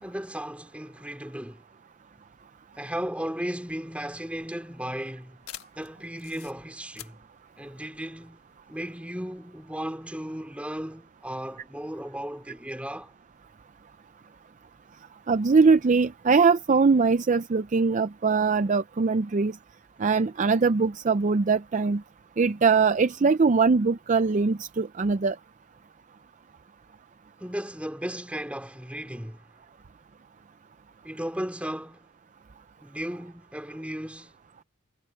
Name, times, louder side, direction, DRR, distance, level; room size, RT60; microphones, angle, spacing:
voice 1, 0.0-1.6 2.7-5.4 5.7-7.2 7.6-8.4 8.7-13.1 27.4-29.5 31.0-32.1 32.8-34.3, equal, 5° right, 2.7 m, -35 dB
sound 1, 3.6-8.7, left 12 dB, 85° left, 1.5 m, -48 dB
voice 2, 15.3-19.5 20.0-22.0 22.4-25.4, right 4 dB, 35° right, 0.4 m, -22 dB
head